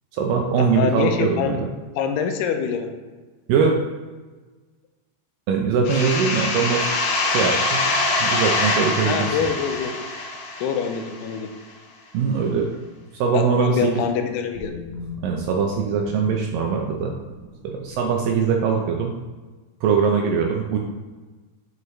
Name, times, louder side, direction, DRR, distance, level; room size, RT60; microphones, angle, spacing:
voice 1, 0.1-1.7 3.5-3.7 5.5-6.9 7.3-7.8 8.2-9.3 12.1-12.7 13.2-13.9 15.2-17.1 17.6-19.1 19.8-20.8, right 5 dB, 80° right, 1 dB, 2.0 m, -21 dB
voice 2, 0.7-1.6 1.9-2.9 9.1-10.0 10.6-11.5 13.3-14.7, left 7 dB, 90° left, 5 dB, 2.7 m, -25 dB
sound 1, 5.9-11.4, left 2 dB, 70° left, 2.5 m, -24 dB
sound 2, 13.2-18.5, left 4 dB, 55° right, 1.7 m, -41 dB
7.0 x 6.4 x 3.2 m, 1.3 s
omnidirectional pair, 4.6 m